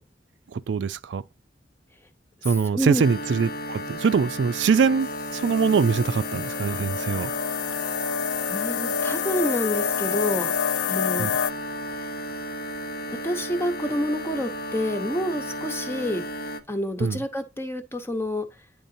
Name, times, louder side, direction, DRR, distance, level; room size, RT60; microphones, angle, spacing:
voice 1, 0.5-1.2 2.4-7.3 11.2-11.3 17.0-17.2, right 5 dB, 80° right, 0.4 m, -23 dB
voice 2, 2.4-3.0 8.5-10.5 10.9-11.3 13.2-16.2 16.7-18.4, left 1 dB, 15° left, 0.9 m, -28 dB
sound 1, 3.0-16.6, equal, 55° left, 0.8 m, -34 dB
sound 2, 5.0-11.5, left 8 dB, 70° left, 0.3 m, -28 dB
10.0 x 3.9 x 2.6 m
head